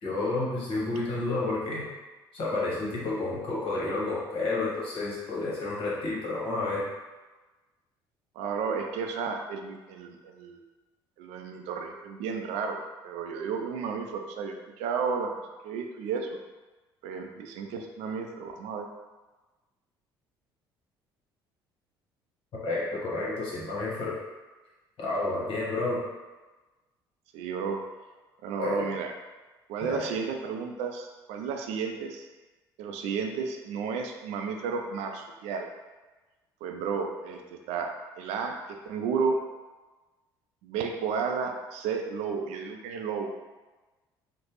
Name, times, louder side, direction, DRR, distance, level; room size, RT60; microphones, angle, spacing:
voice 1, 0.0-1.9 2.3-6.8 22.6-24.2 25.0-26.0 28.6-28.8 29.8-30.0, left 2 dB, 50° left, -5 dB, 1.1 m, -30 dB
voice 2, 8.4-10.6 11.2-12.8 13.0-16.4 17.0-18.9 25.8-26.0 27.3-27.8 28.4-29.1 29.7-32.3 32.8-35.7 36.6-37.9 38.2-38.5 38.8-39.4 40.6-43.3, right 5 dB, 65° right, 3 dB, 0.4 m, -32 dB
3.1 x 2.1 x 2.9 m, 1.2 s
hypercardioid pair, 55°, 12 cm